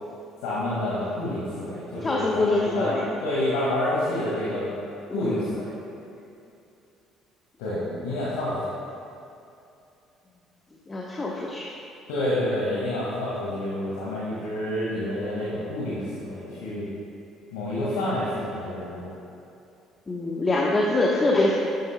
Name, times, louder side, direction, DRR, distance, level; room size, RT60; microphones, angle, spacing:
voice 1, 0.4-2.9 3.2-4.7 5.1-5.7 7.6-8.7 12.1-16.9 17.5-19.1, left 1 dB, 70° left, -8 dB, 1.9 m, -28 dB
voice 2, 2.0-3.1 5.1-5.3 7.8-8.0 10.9-11.7 20.1-21.5, left 2 dB, 25° left, -3 dB, 1.2 m, -24 dB
11.5 x 11.5 x 2.3 m, 2.7 s
figure-of-eight pair, 50°, 0 cm